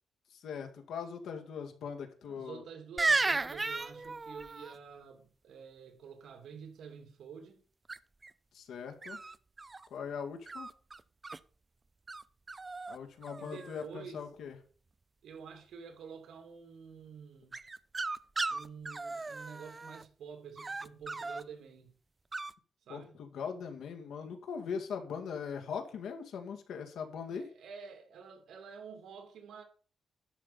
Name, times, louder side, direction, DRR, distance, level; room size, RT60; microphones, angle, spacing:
voice 1, 0.3-2.6 8.5-9.2 9.9-10.7 12.9-14.6 22.9-27.5, left 6 dB, 85° left, 2.1 m, -40 dB
voice 2, 2.2-7.6 13.4-14.2 15.2-17.6 18.5-21.9 22.9-23.2 27.3-29.6, right 6 dB, 80° right, 2.6 m, -49 dB
sound 1, 3.0-4.7 7.9-8.3 9.0-9.9 10.5-11.4 12.1-12.2 12.5-13.0 13.2-13.8 17.5-20.0 20.6-21.4 22.3-22.5, right 3 dB, 20° right, 0.4 m, -35 dB
11.5 x 5.6 x 6.9 m
wide cardioid pair, 160°, 0 cm